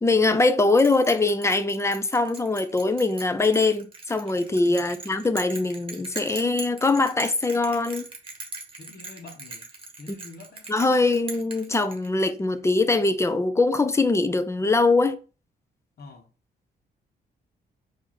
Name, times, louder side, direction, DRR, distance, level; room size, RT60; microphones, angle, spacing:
voice 1, 0.0-8.0 10.1-10.2 10.7-15.2, left 3 dB, 15° left, 0.5 m, -22 dB
Bell, 0.8-12.4, right 3 dB, 30° right, 1.3 m, -40 dB
voice 2, 8.8-9.6 10.0-10.6 16.0-16.3, left 2 dB, 65° left, 1.1 m, -45 dB
4.8 x 2.7 x 4.1 m
cardioid pair, 110°, 18 cm